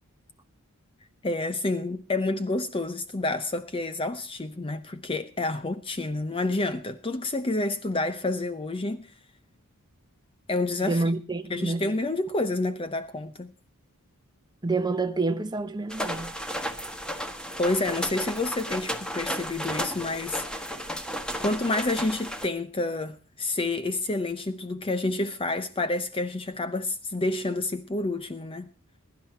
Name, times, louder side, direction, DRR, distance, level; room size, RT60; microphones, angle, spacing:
voice 1, 1.2-9.1 10.5-11.0 11.5-13.5 17.6-20.7 21.4-28.7, left 2 dB, 25° left, 0.7 m, -29 dB
voice 2, 10.8-11.9 14.6-16.3, right 3 dB, 20° right, 1.0 m, -28 dB
sound 1, 15.9-22.5, equal, 5° left, 1.5 m, -33 dB
21.5 x 11.0 x 4.4 m
head